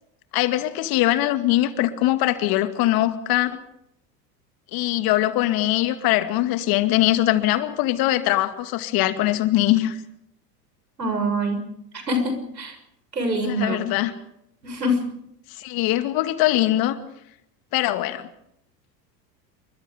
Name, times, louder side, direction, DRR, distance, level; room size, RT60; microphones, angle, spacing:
voice 1, 0.3-3.6 4.7-10.0 13.4-14.1 15.5-17.0 17.7-18.3, left 15 dB, 45° left, 9 dB, 2.3 m, -22 dB
voice 2, 11.0-11.6 12.1-12.7 13.1-13.8 14.6-15.0, equal, 85° right, 6 dB, 6.6 m, -24 dB
28.0 x 24.0 x 5.3 m, 0.78 s
figure-of-eight pair, 80°, 49 cm